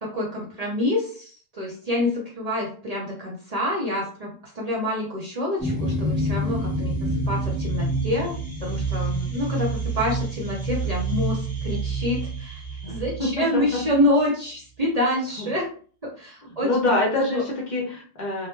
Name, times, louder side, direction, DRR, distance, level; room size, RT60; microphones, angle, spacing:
voice 1, 0.0-6.9 7.3-12.6 12.9-15.7 16.0-17.0 17.3-17.4, left 1 dB, 45° right, -3 dB, 0.6 m, -27 dB
sound 1, 5.6-14.2, right 2 dB, 10° left, 0.7 m, -28 dB
voice 2, 12.8-13.8 15.4-15.5 16.4-18.5, left 2 dB, 50° left, -2 dB, 0.7 m, -26 dB
2.1 x 2.1 x 3.1 m, 0.43 s
omnidirectional pair, 1.1 m